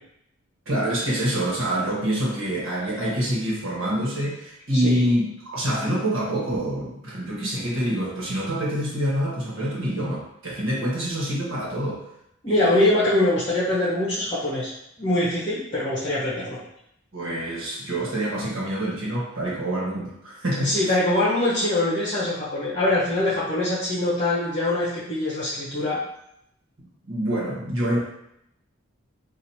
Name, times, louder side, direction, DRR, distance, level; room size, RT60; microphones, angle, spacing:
voice 1, 0.6-12.0 12.5-12.9 17.1-20.9 27.1-28.0, right 1 dB, 60° right, -5 dB, 1.4 m, -26 dB
voice 2, 4.7-5.1 12.4-14.7 15.0-16.6 20.6-26.0, left 1 dB, 30° left, -7 dB, 1.0 m, -23 dB
3.1 x 2.5 x 4.1 m, 0.76 s
head